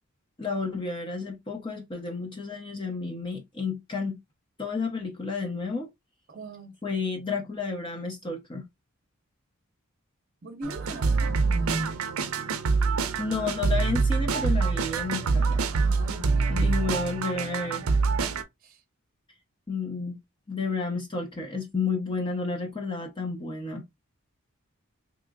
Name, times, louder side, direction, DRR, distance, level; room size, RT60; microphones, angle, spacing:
voice 1, 0.4-4.2 4.6-5.9 6.8-8.6 13.2-15.6 16.5-17.9 19.7-20.2 20.5-23.8, left 4 dB, 25° left, 0.5 m, -31 dB
voice 2, 6.3-6.8 10.4-12.0 15.7-16.9 18.6-18.8, right 1 dB, 40° right, 0.7 m, -38 dB
sound 1, 10.6-18.4, right 4 dB, 75° right, 0.5 m, -25 dB
3.6 x 2.9 x 2.3 m
head